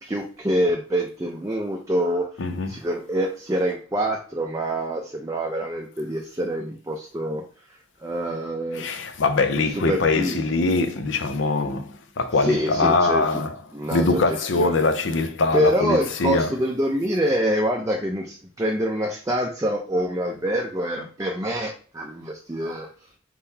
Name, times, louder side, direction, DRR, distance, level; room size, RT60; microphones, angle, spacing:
voice 1, 0.0-7.4 7.7-8.9 9.7-10.4 12.4-13.4 13.7-14.8 15.5-22.9, equal, 15° right, 0.5 m, -26 dB
voice 2, 2.4-2.8 8.7-16.7, left 3 dB, 65° left, 0.6 m, -23 dB
4.2 x 3.8 x 2.8 m
head